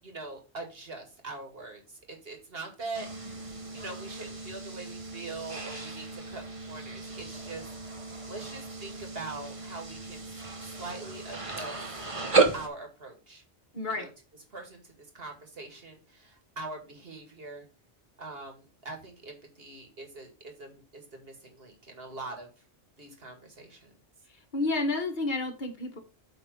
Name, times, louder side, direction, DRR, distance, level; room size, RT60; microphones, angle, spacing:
voice 1, 0.0-3.1 3.7-7.7 8.3-10.2 10.6-11.8 12.5-13.4 14.0-14.1 14.5-17.7 18.2-22.5 23.0-23.9, right 3 dB, 60° right, 3 dB, 2.4 m, -42 dB
sound 1, 2.9-12.7, right 4 dB, 30° right, 1.1 m, -33 dB
voice 2, 13.7-14.1 24.3-26.0, left 2 dB, 45° left, 3 dB, 1.8 m, -30 dB
8.4 x 3.9 x 5.3 m, 0.32 s
omnidirectional pair, 1.1 m